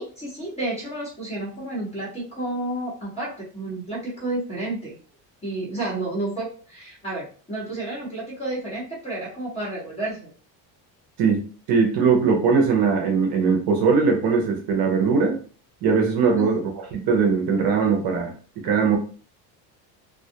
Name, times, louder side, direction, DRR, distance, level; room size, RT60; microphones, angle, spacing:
voice 1, 0.0-5.0 5.4-10.3 16.4-16.5, right 2 dB, 15° left, -7 dB, 1.0 m, -31 dB
voice 2, 11.2-15.4 15.8-18.3 18.6-19.0, right 5 dB, 55° right, 1 dB, 0.6 m, -20 dB
2.3 x 2.0 x 2.7 m, 0.40 s
cardioid pair, 165°, 43 cm